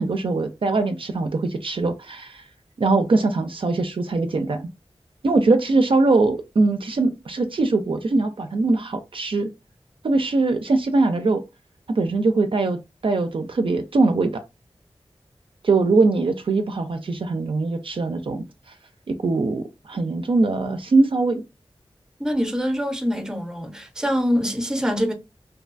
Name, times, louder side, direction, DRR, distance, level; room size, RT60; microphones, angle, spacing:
voice 1, 0.0-2.4 2.8-4.6 5.2-9.5 10.0-11.4 11.9-12.8 13.0-14.4 15.6-18.4 19.1-21.4, right 3 dB, 60° right, 0.4 m, -21 dB
voice 2, 22.2-25.1, equal, 5° right, 0.6 m, -24 dB
2.6 x 2.2 x 2.4 m
cardioid pair, 45°, 10 cm